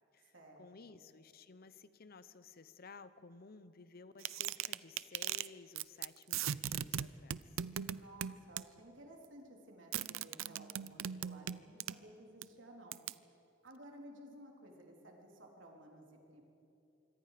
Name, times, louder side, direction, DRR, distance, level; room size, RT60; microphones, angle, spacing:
voice 1, 0.1-7.4, left 4 dB, 50° left, 14 dB, 0.7 m, -56 dB
sound 1, 4.2-5.5 5.8-6.1 6.3-8.6 9.9-12.0 12.4-12.5 12.9-13.1, right 10 dB, 85° right, 0.5 m, -38 dB
voice 2, 7.9-13.0 13.6-16.4, right 1 dB, 70° right, 0 dB, 3.7 m, -56 dB
25.5 x 24.0 x 5.1 m, 2.9 s
head